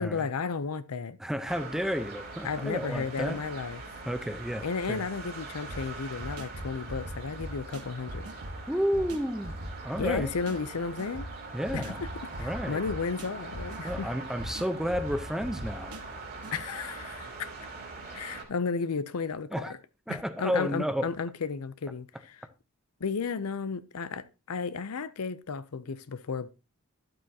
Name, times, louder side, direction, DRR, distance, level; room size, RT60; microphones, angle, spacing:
voice 1, 0.0-1.2 2.4-3.8 4.6-8.3 10.0-11.3 11.7-12.1 12.4-14.1 16.5-17.5 18.1-19.8 20.1-22.5 23.0-26.5, left 5 dB, 75° left, 0.6 m, -33 dB
voice 2, 1.2-3.4 4.0-5.0 8.7-9.6 9.8-10.3 11.5-12.0 12.4-12.8 13.8-16.0 19.5-19.7 20.1-21.1, equal, ahead, 0.8 m, -31 dB
sound 1, 1.5-18.4, right 3 dB, 45° right, 2.5 m, -43 dB
sound 2, 5.7-16.6, right 1 dB, 85° right, 1.4 m, -41 dB
11.5 x 7.8 x 2.8 m
head